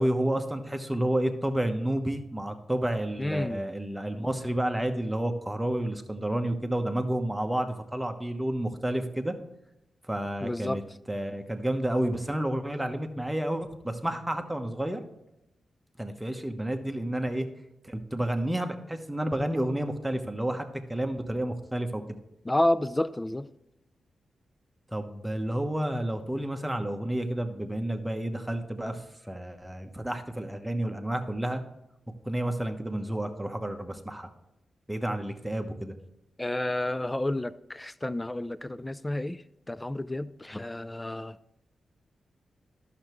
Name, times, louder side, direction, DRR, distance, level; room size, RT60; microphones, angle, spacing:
voice 1, 0.0-9.3 10.1-10.8 11.1-15.0 16.0-17.5 17.8-22.0 24.9-31.6 32.2-34.3 34.9-35.9, right 1 dB, 5° right, 1.0 m, -30 dB
voice 2, 3.2-3.6 10.4-10.8 22.5-23.5 36.4-39.4 39.7-41.4, left 1 dB, 15° left, 0.4 m, -30 dB
11.5 x 6.7 x 3.1 m
cardioid pair, 80°, 0 cm